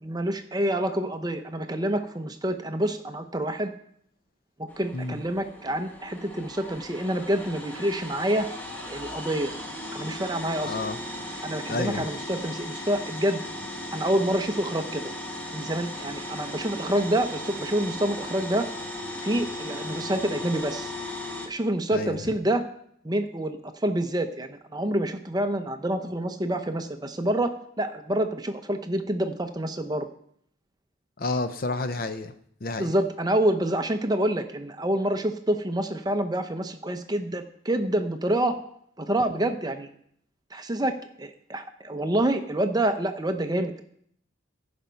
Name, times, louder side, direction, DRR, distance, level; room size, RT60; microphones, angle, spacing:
voice 1, 0.0-3.7 4.6-8.5 8.9-9.5 9.9-10.8 11.4-13.4 13.9-15.1 15.5-18.7 19.2-20.9 21.5-22.7 23.0-30.1 32.8-38.6 39.0-39.9 40.5-43.8, right 1 dB, 20° right, 8 dB, 0.6 m, -27 dB
sound 1, 4.7-21.5, left 1 dB, 10° left, 1.1 m, -37 dB
voice 2, 10.6-11.0 11.7-12.1 21.9-22.2 31.2-32.3 32.6-32.9, left 2 dB, 45° left, 10 dB, 0.6 m, -30 dB
15.0 x 5.2 x 5.6 m, 0.67 s
head